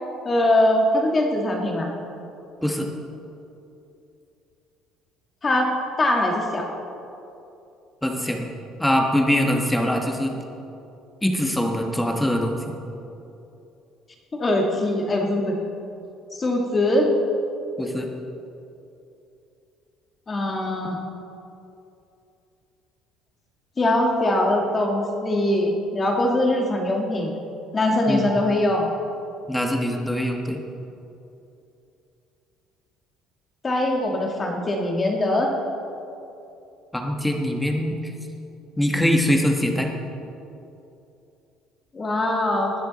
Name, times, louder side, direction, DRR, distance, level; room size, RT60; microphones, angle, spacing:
voice 1, 0.2-1.9 5.4-6.7 14.3-15.6 16.4-17.1 20.3-21.0 23.8-27.3 27.7-28.9 33.6-35.5 41.9-42.7, left 1 dB, 20° left, 1 dB, 1.6 m, -22 dB
voice 2, 8.0-8.4 8.8-10.3 11.2-12.8 17.8-18.1 28.1-28.3 29.5-30.6 36.9-38.1 38.8-39.9, left 1 dB, 5° left, 2 dB, 1.2 m, -23 dB
20.0 x 10.0 x 4.0 m, 2.8 s
cardioid pair, 165°, 0 cm